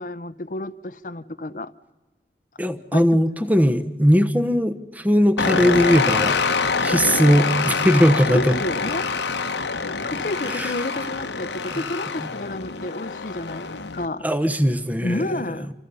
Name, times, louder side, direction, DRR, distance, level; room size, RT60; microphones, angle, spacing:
voice 1, 0.0-1.7 2.9-3.2 8.3-9.1 10.0-14.2 15.0-15.7, left 1 dB, 50° left, 0.8 m, -30 dB
voice 2, 2.6-6.4 6.8-8.5 10.5-10.7 11.7-11.8 12.2-12.3 14.2-15.3, equal, 10° right, 1.0 m, -19 dB
sound 1, 5.4-14.1, left 4 dB, 90° left, 1.3 m, -25 dB
28.0 x 26.0 x 5.6 m
head